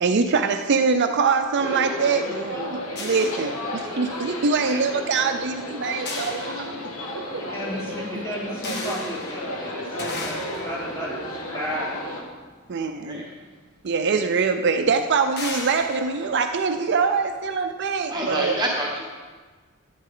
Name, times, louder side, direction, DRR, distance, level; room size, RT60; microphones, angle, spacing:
voice 1, 0.0-6.8 7.1-7.4 12.7-13.2 13.8-18.6, right 5 dB, 55° right, 7 dB, 0.5 m, -23 dB
sound 1, 1.6-12.2, left 1 dB, 75° left, 1.8 m, -33 dB
sound 2, 3.0-4.3 6.1-7.3 8.6-13.1 14.0-14.1 14.5-14.7 15.4-17.3, left 3 dB, 50° left, 1.4 m, -37 dB
voice 2, 7.3-9.8 10.2-10.4 10.6-11.2 11.5-12.0, equal, 15° left, -7 dB, 3.4 m, -33 dB
voice 3, 18.1-19.0, right 1 dB, 20° right, -3 dB, 1.3 m, -27 dB
13.5 x 9.2 x 3.8 m, 1.4 s
head